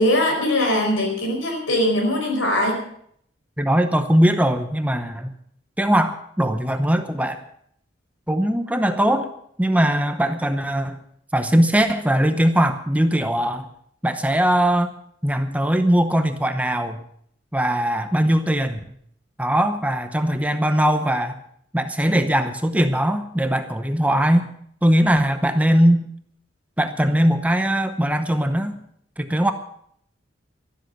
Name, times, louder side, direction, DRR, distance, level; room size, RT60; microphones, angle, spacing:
voice 1, 0.0-2.8, left 1 dB, 90° left, 2 dB, 5.0 m, -21 dB
voice 2, 3.6-5.3 5.8-7.4 8.3-9.3 9.6-11.0 11.3-13.7 14.0-14.9 15.2-17.0 17.5-18.8 19.4-21.4 21.7-24.5 24.8-26.1 26.8-28.8 29.2-29.5, equal, 5° right, 8 dB, 0.8 m, -20 dB
12.5 x 12.5 x 6.6 m, 0.66 s
head